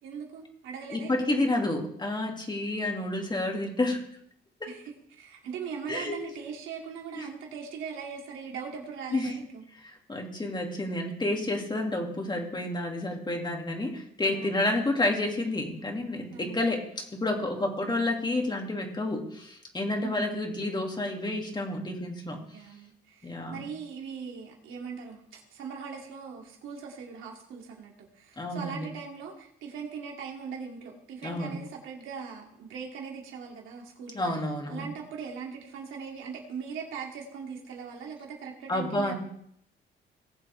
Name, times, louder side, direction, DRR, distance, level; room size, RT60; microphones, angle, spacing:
voice 1, 0.0-1.5 4.7-9.6 14.3-14.8 16.3-16.6 17.5-17.9 20.0-20.5 22.5-34.3 34.7-39.1, right 6 dB, 85° right, 0 dB, 2.8 m, -40 dB
voice 2, 0.9-4.0 4.6-4.7 5.9-6.2 7.2-7.3 9.1-9.3 9.8-22.4 23.2-23.6 28.4-28.9 31.2-31.6 34.1-34.9 38.7-39.1, left 2 dB, 20° left, 1 dB, 2.5 m, -30 dB
19.0 x 7.4 x 3.5 m, 0.69 s
cardioid pair, 90°, 20 cm